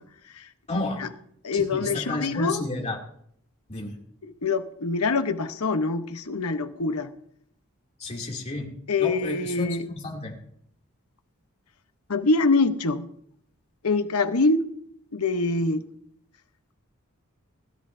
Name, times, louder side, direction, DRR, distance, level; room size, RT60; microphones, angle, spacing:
voice 1, 0.7-1.0 1.5-3.0 3.7-4.0 8.0-8.7 9.0-10.4, left 2 dB, 30° left, 2.8 m, -31 dB
voice 2, 1.4-2.6 4.2-7.1 8.9-9.9 12.1-13.1 13.8-14.6 15.1-15.8, left 3 dB, 85° left, 1.0 m, -24 dB
20.5 x 13.0 x 2.7 m
head